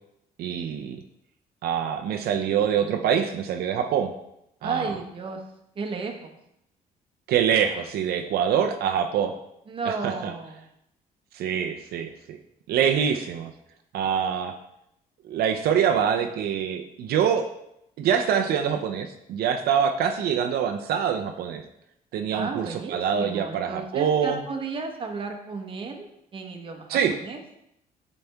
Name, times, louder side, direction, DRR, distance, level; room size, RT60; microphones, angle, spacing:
voice 1, 0.4-1.0 1.6-4.1 4.6-5.0 7.3-9.3 9.9-10.3 11.3-12.4 12.7-13.5 13.9-14.5 15.3-17.5 18.0-21.6 22.1-24.4 26.9-27.2, right 8 dB, 80° right, 5 dB, 0.6 m, -25 dB
voice 2, 4.6-5.4 5.8-6.3 9.7-10.6 22.3-26.9 27.2-27.4, right 4 dB, 35° right, 3 dB, 1.1 m, -33 dB
9.1 x 4.2 x 3.4 m, 0.79 s
cardioid pair, 130°, 16 cm